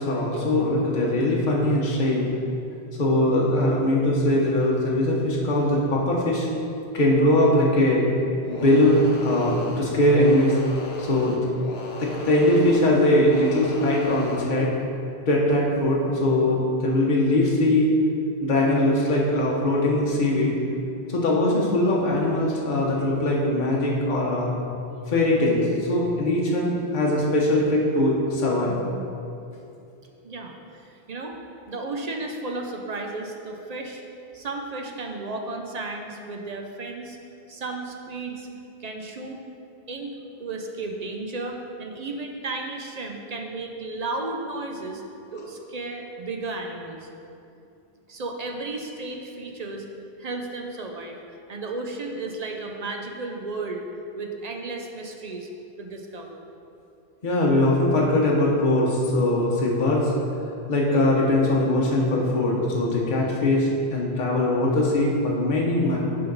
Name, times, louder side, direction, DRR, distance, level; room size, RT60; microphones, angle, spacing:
voice 1, 0.0-2.3 3.0-6.5 6.9-8.1 8.5-10.6 11.0-11.5 12.0-14.7 15.3-17.9 18.4-20.5 21.1-24.5 25.1-28.8 57.2-60.1 60.7-66.0, left 1 dB, 50° left, -4 dB, 1.0 m, -21 dB
sound 1, 8.4-14.6, left 2 dB, 75° left, 1.0 m, -37 dB
voice 2, 30.2-31.4 31.7-34.0 34.3-37.2 37.5-38.5 38.8-39.4 39.9-40.1 40.4-45.0 45.3-47.1 48.1-49.9 50.2-51.2 51.5-53.9 54.1-55.5 55.8-56.5, right 3 dB, 45° right, 2 dB, 0.6 m, -33 dB
11.0 x 3.8 x 3.9 m, 2.7 s
omnidirectional pair, 1.1 m